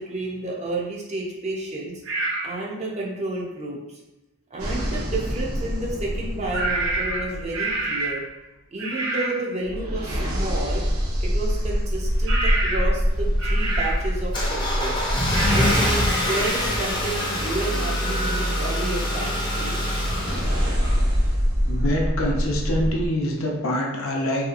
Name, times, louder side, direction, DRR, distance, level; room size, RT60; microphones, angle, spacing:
voice 1, 0.0-2.0 2.4-4.0 4.5-8.2 8.7-10.8 11.2-15.1 15.5-20.0, right 2 dB, 30° right, -2 dB, 0.5 m, -31 dB
sound 1, 2.0-2.5 6.5-8.2 8.8-9.4 12.3-13.0 13.4-14.1 15.3-15.9 16.2-16.5, right 2 dB, 55° right, 0.8 m, -27 dB
sound 2, 4.6-8.1 9.6-17.6 20.0-23.1, equal, 85° right, 0.8 m, -25 dB
Car / Engine starting, 13.1-21.3, left 1 dB, 20° left, 0.5 m, -25 dB
voice 2, 21.6-24.5, equal, 70° left, -1 dB, 0.6 m, -25 dB
3.2 x 2.8 x 2.4 m, 1.0 s
head